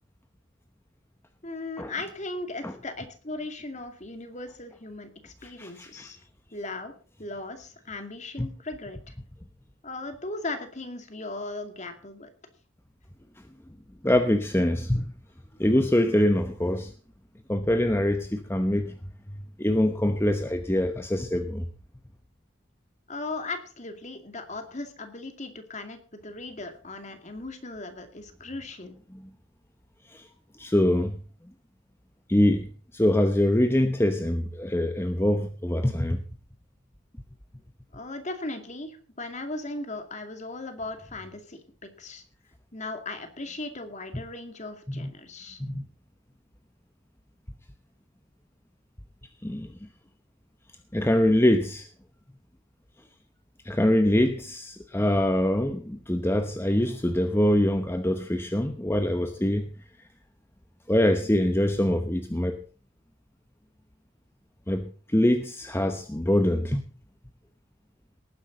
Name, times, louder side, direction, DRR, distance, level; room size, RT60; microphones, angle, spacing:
voice 1, 1.4-6.2 6.5-6.9 7.2-9.1 9.8-12.3 23.1-28.9 37.9-42.2 42.7-45.6, left 2 dB, 35° left, 2.3 m, -37 dB
voice 2, 5.4-6.1 8.4-8.5 14.0-15.1 15.6-16.9 17.5-19.0 19.3-21.7 29.1-29.2 30.1-30.3 30.6-31.2 32.3-36.2 45.0-45.1 45.6-45.8 49.4-49.9 50.9-51.9 53.6-59.7 60.9-62.6 64.7-66.8, left 1 dB, 10° left, 0.9 m, -24 dB
19.0 x 10.0 x 4.0 m
head